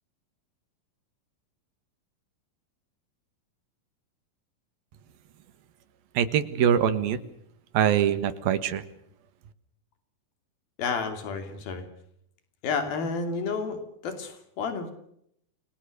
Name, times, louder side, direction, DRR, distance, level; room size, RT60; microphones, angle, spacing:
voice 1, 6.1-7.2 7.7-8.8, right 9 dB, 85° right, 12 dB, 3.4 m, -23 dB
voice 2, 10.8-11.8 12.6-14.9, left 5 dB, 85° left, 8 dB, 4.8 m, -31 dB
29.0 x 21.0 x 6.6 m, 0.72 s
omnidirectional pair, 4.1 m